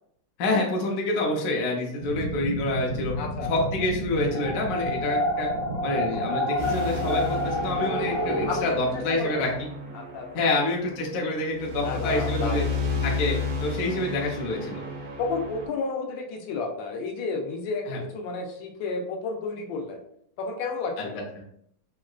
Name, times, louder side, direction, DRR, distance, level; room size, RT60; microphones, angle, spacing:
voice 1, 0.4-3.1 3.5-5.5 5.8-9.5 10.3-12.7 13.0-14.8 17.9-18.0, left 2 dB, 70° left, -1 dB, 1.0 m, -27 dB
sound 1, 2.0-8.6, left 1 dB, 70° right, 0.5 m, -28 dB
voice 2, 3.2-3.7 8.5-9.6 9.9-10.6 11.8-12.7 15.2-20.0 20.4-21.2, left 4 dB, 85° left, 2 dB, 1.4 m, -32 dB
sound 2, 6.6-15.7, left 3 dB, 90° right, 1.5 m, -32 dB
3.7 x 2.2 x 2.3 m, 0.70 s
omnidirectional pair, 2.0 m